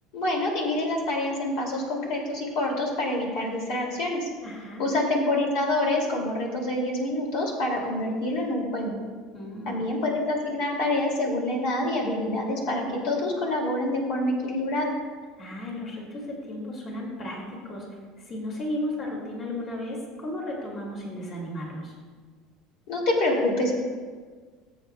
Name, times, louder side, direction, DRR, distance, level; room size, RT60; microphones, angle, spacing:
voice 1, 0.1-4.3 4.8-8.9 9.6-14.9 22.9-23.7, left 1 dB, 65° left, 0 dB, 2.4 m, -26 dB
voice 2, 4.4-4.9 9.3-9.8 15.4-17.9 18.3-21.9, left 1 dB, 35° left, -1 dB, 2.2 m, -34 dB
20.0 x 7.9 x 2.3 m, 1.5 s
cardioid pair, 140°, 0 cm